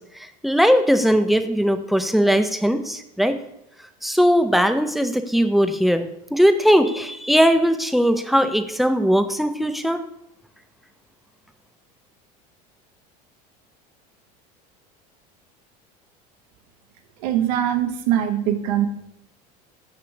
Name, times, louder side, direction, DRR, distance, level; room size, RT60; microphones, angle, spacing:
voice 1, 0.2-3.4 4.0-10.0, equal, ahead, 9 dB, 0.4 m, -19 dB
voice 2, 17.2-18.9, right 10 dB, 80° right, 7 dB, 0.8 m, -22 dB
5.9 x 5.9 x 3.2 m, 0.78 s
supercardioid pair, 120°, 20 cm